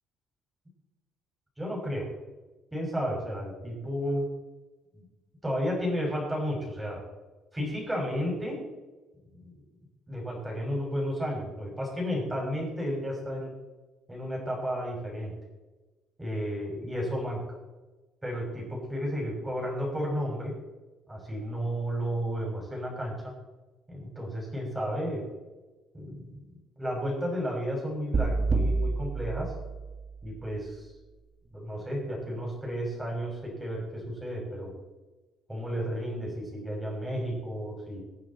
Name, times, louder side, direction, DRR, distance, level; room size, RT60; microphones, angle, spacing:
voice 1, 1.6-2.1 2.7-4.3 4.9-5.0 5.4-7.0 7.5-8.6 9.3-9.6 10.1-13.5 14.1-15.3 16.2-17.4 18.2-20.5 21.1-23.3 23.9-25.2 25.9-29.5 30.2-30.9 31.5-34.7 35.5-38.0, equal, 10° right, -2 dB, 6.4 m, -32 dB
sound 1, 28.1-30.4, right 3 dB, 30° right, 1.7 m, -28 dB
25.0 x 8.6 x 4.4 m, 1.2 s
cardioid pair, 145°, 0 cm